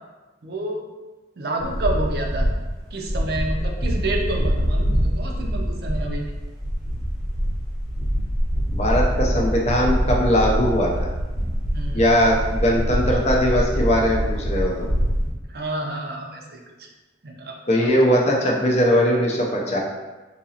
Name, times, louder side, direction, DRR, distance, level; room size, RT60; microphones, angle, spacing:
voice 1, 0.4-0.8 1.4-2.5 2.9-6.2 11.7-12.0 15.5-16.9 17.2-17.9, right 1 dB, 55° right, 1 dB, 0.5 m, -29 dB
sound 1, 1.6-2.8 3.1-15.3, equal, ahead, 0.8 m, -24 dB
voice 2, 8.7-10.9 11.9-14.9 17.7-19.8, equal, 35° left, -1 dB, 0.5 m, -20 dB
3.9 x 2.8 x 2.7 m, 1.2 s
head